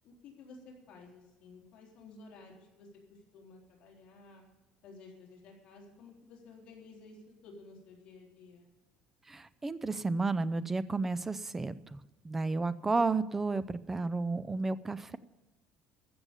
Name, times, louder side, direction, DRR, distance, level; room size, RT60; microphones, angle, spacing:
voice 1, 0.0-4.4 4.8-8.7, left 3 dB, 50° left, -2 dB, 3.8 m, -54 dB
voice 2, 9.3-15.2, right 3 dB, 10° right, 15 dB, 0.5 m, -32 dB
14.5 x 7.0 x 9.7 m, 1.0 s
cardioid pair, 165°, 2 cm